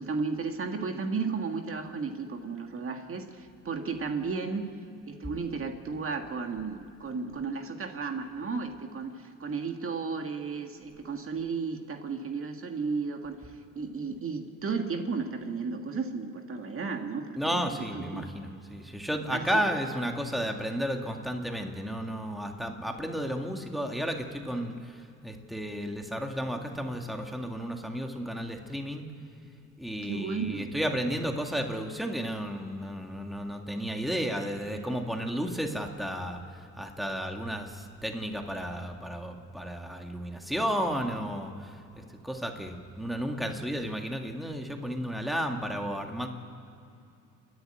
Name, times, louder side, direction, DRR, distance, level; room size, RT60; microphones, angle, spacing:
voice 1, 0.0-4.7 5.1-18.3 19.3-19.6 30.0-30.7, right 4 dB, 45° right, 5 dB, 1.8 m, -34 dB
voice 2, 17.4-29.0 29.8-36.4 36.8-41.8 42.2-46.3, equal, ahead, 3 dB, 2.0 m, -33 dB
28.5 x 11.0 x 9.0 m, 2.7 s
cardioid pair, 90°, 30 cm